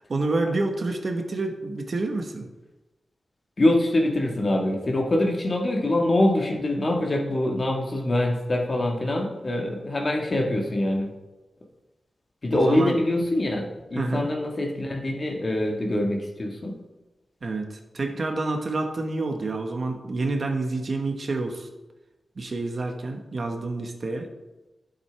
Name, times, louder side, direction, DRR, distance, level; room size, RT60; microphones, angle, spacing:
voice 1, 0.1-2.5 12.5-13.0 14.0-14.3 17.4-21.7 22.4-24.3, right 2 dB, 50° right, 4 dB, 1.2 m, -28 dB
voice 2, 3.6-11.1 12.4-16.7, left 1 dB, 40° left, 1 dB, 1.6 m, -24 dB
12.0 x 7.7 x 3.4 m, 1.1 s
wide cardioid pair, 110°, 0 cm